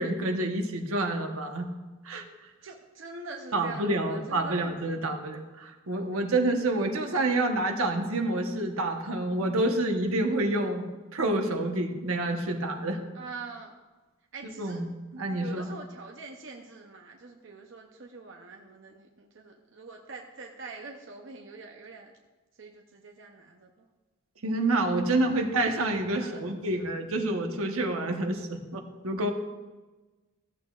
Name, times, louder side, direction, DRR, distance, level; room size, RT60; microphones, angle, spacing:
voice 1, 0.0-1.7 2.0-2.2 3.5-13.0 14.4-15.7 24.4-29.3, right 2 dB, 80° right, 4 dB, 1.1 m, -28 dB
voice 2, 2.6-4.7 13.1-13.7 14.3-14.8 15.4-22.1 22.6-23.7 25.3-25.5 26.2-26.4, right 3 dB, 60° right, 1 dB, 0.7 m, -44 dB
14.5 x 7.8 x 2.4 m, 1.2 s
head